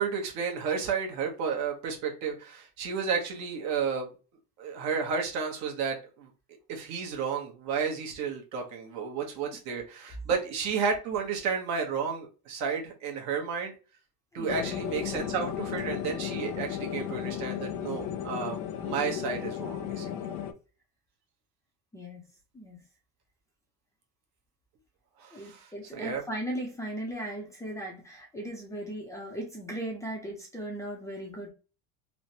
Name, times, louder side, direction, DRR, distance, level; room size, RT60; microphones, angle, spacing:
voice 1, 0.0-4.1 4.6-6.3 6.7-13.7 14.3-20.1 25.2-26.2, right 6 dB, 55° right, 1 dB, 0.9 m, -32 dB
voice 2, 14.3-14.8 21.9-22.2 22.5-22.8 25.3-31.5, right 1 dB, 10° left, -2 dB, 0.5 m, -37 dB
sound 1, 14.5-20.5, left 10 dB, 75° left, 0.5 m, -34 dB
3.2 x 2.0 x 2.7 m, 0.34 s
cardioid pair, 150°, 34 cm